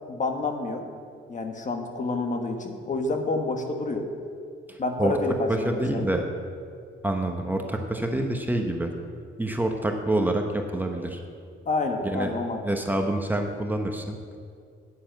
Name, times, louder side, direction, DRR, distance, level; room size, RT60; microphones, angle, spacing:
voice 1, 0.1-0.9 1.3-4.1 4.8-6.1 11.7-12.6, left 3 dB, 40° left, 4 dB, 1.3 m, -28 dB
voice 2, 4.7-5.2 5.5-6.2 7.0-8.9 9.4-11.2 12.0-12.3 12.6-14.2, right 1 dB, 10° right, 3 dB, 1.0 m, -27 dB
9.4 x 6.9 x 7.8 m, 2.2 s
cardioid pair, 90°, 20 cm